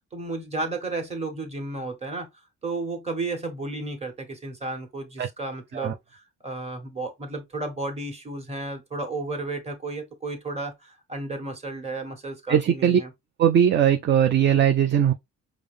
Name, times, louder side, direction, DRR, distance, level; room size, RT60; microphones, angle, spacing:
voice 1, 0.1-2.3 2.6-13.1, right 2 dB, 20° right, 1.4 m, -33 dB
voice 2, 12.5-13.0 13.4-15.1, right 9 dB, 40° right, 0.4 m, -19 dB
4.9 x 2.0 x 3.3 m
cardioid pair, 90°, 30 cm